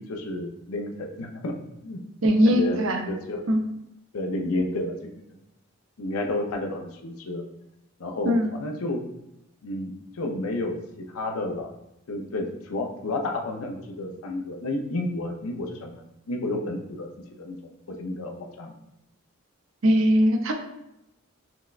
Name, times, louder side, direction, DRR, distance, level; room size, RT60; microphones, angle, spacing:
voice 1, 0.0-1.6 1.8-2.0 2.5-3.4 4.1-5.1 6.0-7.4 8.0-9.0 9.6-11.7 12.1-17.1 17.4-18.7, left 2 dB, 85° left, 2 dB, 0.5 m, -31 dB
voice 2, 2.2-3.0 3.5-3.6 8.2-8.5 19.8-20.5, equal, 70° right, 4 dB, 0.5 m, -20 dB
5.8 x 2.2 x 2.4 m, 0.86 s
head